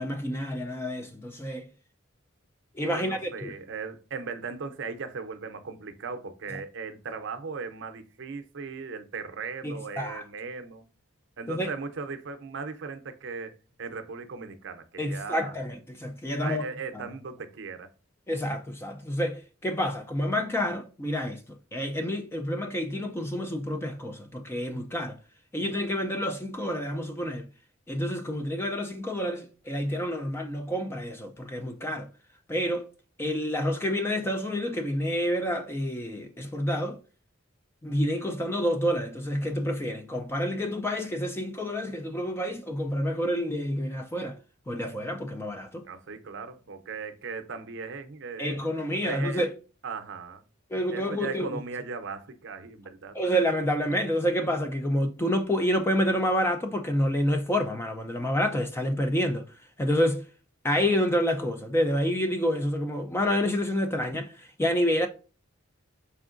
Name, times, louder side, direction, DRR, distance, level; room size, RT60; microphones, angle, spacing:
voice 1, 0.0-1.7 2.7-3.6 9.6-10.2 11.5-11.7 15.0-16.6 16.9-17.1 18.3-25.2 25.5-27.5 27.9-32.1 32.5-32.9 33.2-37.0 37.8-44.4 44.7-45.8 48.4-49.5 50.7-51.6 53.1-59.5 59.8-60.3 60.6-65.1, equal, 10° left, 0.3 m, -28 dB
voice 2, 2.9-10.8 11.4-15.6 16.4-17.9 45.8-49.5 49.8-50.4 50.9-53.2, right 4 dB, 60° right, 0.6 m, -38 dB
4.4 x 3.5 x 2.4 m
head